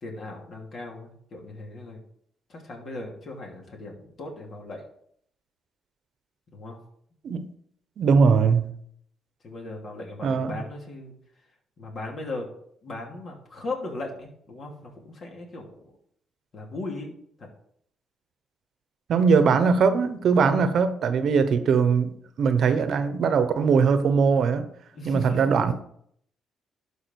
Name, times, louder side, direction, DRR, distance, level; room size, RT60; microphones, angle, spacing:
voice 1, 0.0-2.0 2.5-4.8 6.5-6.8 9.4-11.1 11.8-12.5 12.8-16.0 16.5-17.5 20.4-20.7 24.9-25.7, left 2 dB, 55° left, 2.9 m, -38 dB
voice 2, 8.0-8.7 10.2-10.6 19.1-24.7 25.0-25.7, right 5 dB, 65° right, 0.9 m, -21 dB
12.0 x 4.9 x 4.6 m
cardioid pair, 90°, 0 cm